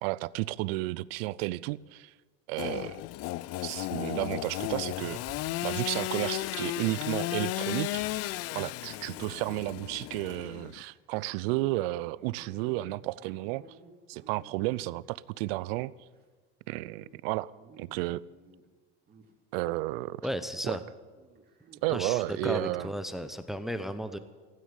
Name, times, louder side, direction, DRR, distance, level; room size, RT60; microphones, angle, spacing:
voice 1, 0.0-2.1 2.5-3.0 3.6-5.2 5.6-8.2 8.5-13.6 14.1-15.9 16.7-17.5 17.8-18.2 19.5-20.3 20.6-20.8 21.8-22.9, right 19 dB, 85° right, 0.5 m, -32 dB
Engine / Sawing, 2.6-10.8, left 18 dB, 55° left, 0.5 m, -34 dB
Dog, 4.6-6.9 7.2-10.5 10.9-11.2 12.0-15.1 15.5-16.2 16.6-17.0 17.4-18.6 19.1-19.3 19.9-20.0 20.4-20.5 21.1-23.4, right 3 dB, 30° right, 3.0 m, -55 dB
voice 2, 20.2-20.8 21.9-24.2, equal, ahead, 0.9 m, -34 dB
16.0 x 9.5 x 8.9 m
supercardioid pair, 110°, 29 cm